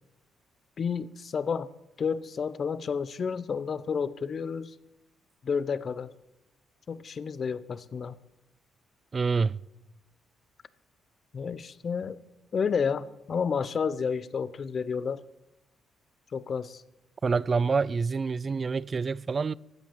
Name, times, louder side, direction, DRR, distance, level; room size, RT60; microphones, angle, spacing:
voice 1, 0.8-1.7 2.0-4.7 5.4-6.1 6.9-8.2 11.3-12.2 12.5-15.2 16.3-16.8, left 6 dB, 45° left, 0.8 m, -30 dB
voice 2, 9.1-9.6 17.2-19.5, right 4 dB, 35° right, 0.4 m, -27 dB
14.5 x 10.0 x 7.5 m
cardioid pair, 90°, 0 cm